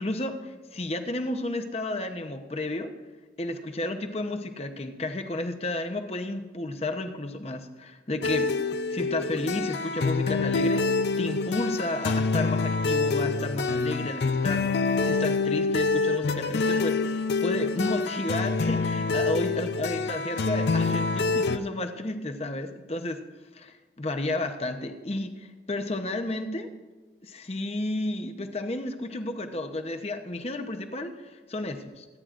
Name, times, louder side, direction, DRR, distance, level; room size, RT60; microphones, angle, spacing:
voice 1, 0.0-2.9 3.4-8.5 8.9-10.8 11.2-23.2 23.5-26.7 27.2-32.1, left 2 dB, 35° left, 6 dB, 0.8 m, -32 dB
sound 1, 8.2-21.6, left 4 dB, 65° left, 0.5 m, -26 dB
24.5 x 9.5 x 2.5 m, 1.3 s
head